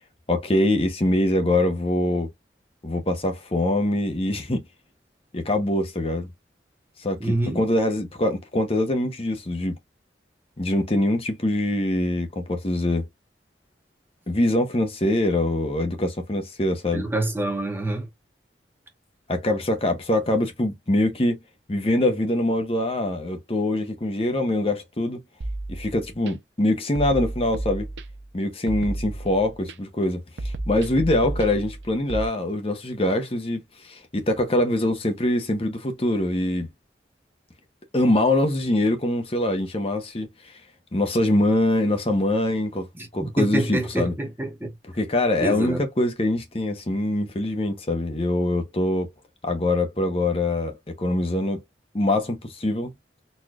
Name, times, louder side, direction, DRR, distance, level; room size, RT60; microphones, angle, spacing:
voice 1, 0.3-2.3 2.8-4.6 5.3-6.3 7.0-9.8 10.6-13.1 14.3-17.1 19.3-21.4 21.7-25.2 25.7-27.9 28.3-36.7 37.9-40.3 40.9-42.9 43.1-44.1 45.0-49.1 49.4-51.6 51.9-52.9, left 1 dB, 30° left, 0.9 m, -23 dB
voice 2, 7.2-7.6 16.9-18.1 43.0-44.7 45.4-45.8, right 1 dB, 10° right, 1.0 m, -26 dB
sound 1, 25.4-26.3 27.0-28.3 28.7-29.7 30.4-32.3, right 2 dB, 80° right, 0.6 m, -32 dB
4.2 x 3.0 x 2.4 m
head